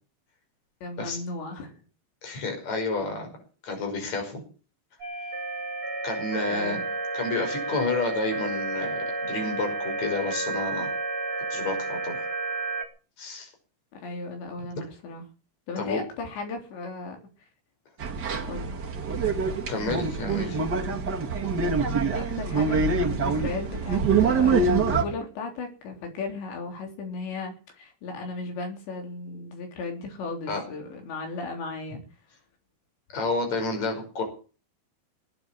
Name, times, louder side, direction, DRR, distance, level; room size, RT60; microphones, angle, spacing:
voice 1, 0.8-1.7 6.5-6.9 13.9-15.3 15.7-17.2 18.4-18.8 22.1-32.0, left 3 dB, 70° left, 3 dB, 5.7 m, -36 dB
voice 2, 2.2-3.3 3.6-4.4 6.0-6.8 7.1-10.9 11.5-12.2 13.2-13.5 14.8-14.9 15.8-16.0 19.7-20.6 30.5-30.6 33.1-34.2, left 3 dB, 35° left, 4 dB, 6.4 m, -30 dB
sound 1, 5.0-12.8, right 3 dB, 25° right, 4.5 m, -31 dB
sound 2, 18.0-25.0, right 4 dB, 80° right, 0.9 m, -25 dB
20.0 x 9.2 x 7.5 m, 0.37 s
omnidirectional pair, 5.4 m